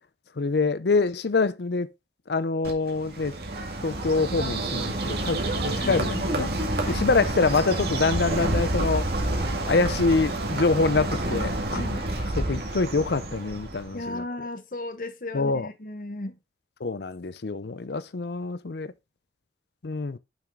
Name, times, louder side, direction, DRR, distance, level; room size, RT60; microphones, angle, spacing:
voice 1, 0.4-1.9 2.3-3.3 3.8-6.5 6.9-9.1 9.5-11.8 12.2-14.2 15.3-15.7 16.8-18.9 19.8-20.2, left 3 dB, 70° left, 0.6 m, -25 dB
Bird, 2.6-14.1, right 1 dB, 60° right, 2.0 m, -28 dB
voice 2, 13.9-16.4, left 2 dB, 50° left, 1.0 m, -35 dB
7.2 x 5.8 x 3.6 m
head